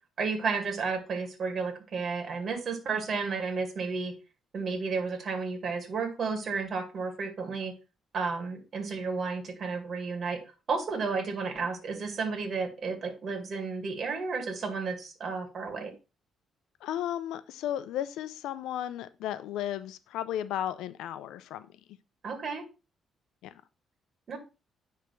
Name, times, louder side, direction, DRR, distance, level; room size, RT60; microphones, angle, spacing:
voice 1, 0.2-4.1 4.5-7.7 8.1-10.4 10.7-15.9 22.2-22.6 24.3-24.4, right 4 dB, 50° right, 4 dB, 1.9 m, -32 dB
voice 2, 16.8-21.7 23.4-23.5, left 11 dB, 90° left, 14 dB, 0.4 m, -34 dB
10.0 x 3.4 x 3.2 m, 0.29 s
cardioid pair, 90°, 0 cm